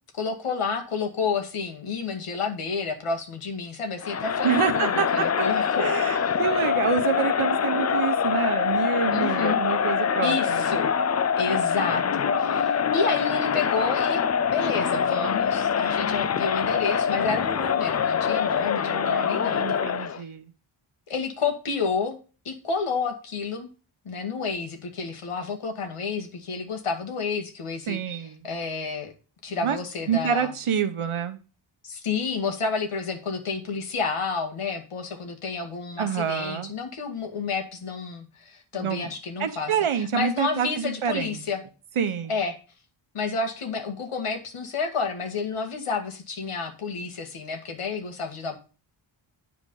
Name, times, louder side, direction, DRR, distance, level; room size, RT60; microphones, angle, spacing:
voice 1, 0.2-5.9 9.1-9.6 10.2-10.9 11.4-14.2 14.5-20.2 21.1-22.2 22.4-23.7 24.1-29.1 29.4-30.6 32.0-41.6 42.3-42.6 43.1-48.6, left 4 dB, 90° left, 5 dB, 2.1 m, -30 dB
Crowd, 4.0-20.2, left 7 dB, 35° left, 0.4 m, -24 dB
voice 2, 4.4-5.3 5.8-10.6 18.8-20.5 27.9-28.5 29.6-29.8 30.1-31.4 36.0-36.7 38.7-39.1 39.4-41.4 42.0-42.3, right 8 dB, 75° right, 9 dB, 1.2 m, -27 dB
9.6 x 4.8 x 5.5 m, 0.34 s
wide cardioid pair, 130°, 50 cm